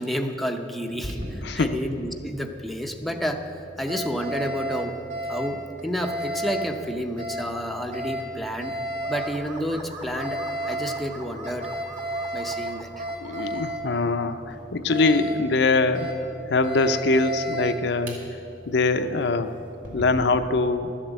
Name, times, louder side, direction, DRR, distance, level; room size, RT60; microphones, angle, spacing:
voice 1, 0.0-5.0 5.3-8.8 9.1-11.7 12.3-13.1, equal, ahead, 3 dB, 0.6 m, -30 dB
Alarm, 0.9-20.2, right 1 dB, 50° right, 2.8 m, -34 dB
voice 2, 1.4-1.8 13.2-16.1 16.5-18.2 18.7-19.5 19.9-20.9, left 3 dB, 65° left, 9 dB, 0.6 m, -23 dB
sound 1, 9.0-13.7, right 2 dB, 25° right, 1.1 m, -42 dB
12.5 x 7.4 x 8.0 m, 2.8 s
head